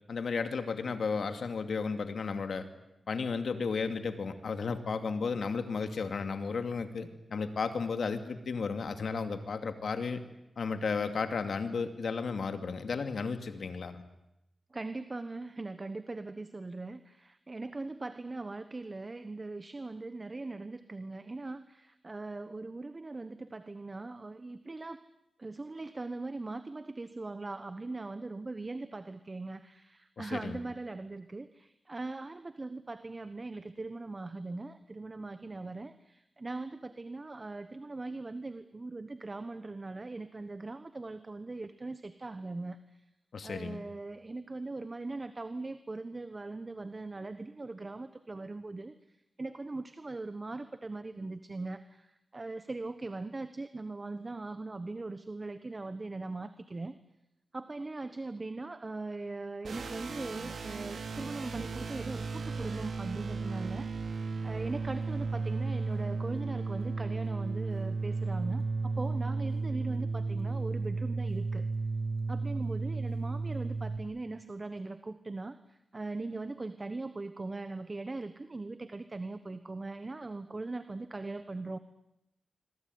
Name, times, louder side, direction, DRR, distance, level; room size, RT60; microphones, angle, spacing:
voice 1, 0.1-2.7 3.1-10.2 10.6-14.0 30.2-30.6 43.3-43.8, left 5 dB, 80° left, 8 dB, 2.5 m, -33 dB
voice 2, 14.7-25.0 25.4-43.0 43.4-48.9 49.4-57.0 57.5-71.7 72.3-81.8, right 3 dB, 35° right, 11 dB, 1.2 m, -40 dB
sound 1, 59.6-74.0, right 3 dB, 90° right, 3.6 m, -34 dB
25.0 x 23.0 x 9.5 m, 0.88 s
wide cardioid pair, 85°, 0 cm